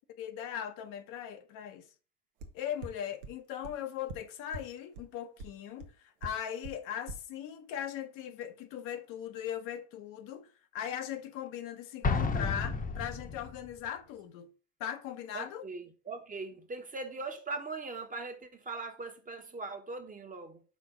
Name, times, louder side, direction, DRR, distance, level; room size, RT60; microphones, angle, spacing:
voice 1, 0.2-1.9 2.5-14.5 14.8-15.7, left 9 dB, 60° left, 0.9 m, -39 dB
sound 1, 2.4-2.5 2.8-2.9 3.2-3.3 3.6-3.7 4.1-4.2 4.5-4.6 5.0-5.1 5.4-5.5 5.8-5.9 6.2-6.3 6.6-6.7 7.1-7.2, right 2 dB, 80° right, 0.9 m, -40 dB
Explosion, 12.0-13.7, left 4 dB, 25° left, 0.9 m, -31 dB
voice 2, 15.3-20.6, right 3 dB, 20° right, 1.1 m, -40 dB
5.3 x 4.2 x 4.9 m
hypercardioid pair, 75°, 36 cm